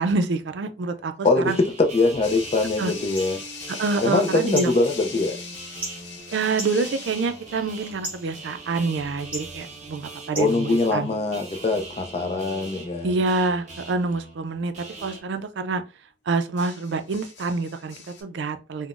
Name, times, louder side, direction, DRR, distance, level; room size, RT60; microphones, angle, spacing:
voice 1, 0.0-1.6 2.8-2.9 3.8-4.7 6.3-11.1 13.0-15.8 16.3-18.9, right 3 dB, 85° right, 0.4 m, -26 dB
voice 2, 1.2-3.4 4.0-5.4 10.4-13.2, left 3 dB, 35° left, 0.4 m, -23 dB
sound 1, 1.5-15.2, right 3 dB, 40° right, 0.6 m, -41 dB
sound 2, 2.0-11.4, right 1 dB, 10° right, 1.5 m, -41 dB
sound 3, 2.2-7.5 11.0-11.4 16.6-18.2, left 5 dB, 85° left, 0.6 m, -40 dB
3.7 x 2.1 x 2.4 m
head